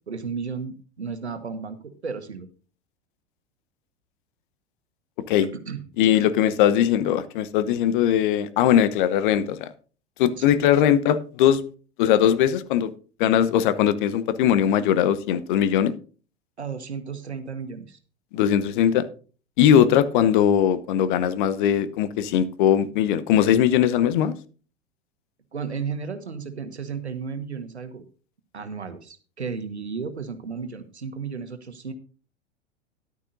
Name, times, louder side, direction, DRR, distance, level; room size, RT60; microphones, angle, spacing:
voice 1, 0.1-2.5 5.4-5.8 10.4-10.5 16.6-18.0 25.5-28.0 28.5-31.9, right 5 dB, 80° right, 9 dB, 1.4 m, -34 dB
voice 2, 6.0-9.7 10.2-11.6 12.0-12.9 13.2-15.9 18.3-19.1 19.6-24.3, left 10 dB, 50° left, 14 dB, 0.9 m, -20 dB
13.0 x 11.5 x 2.6 m, 0.39 s
figure-of-eight pair, 90°, 33 cm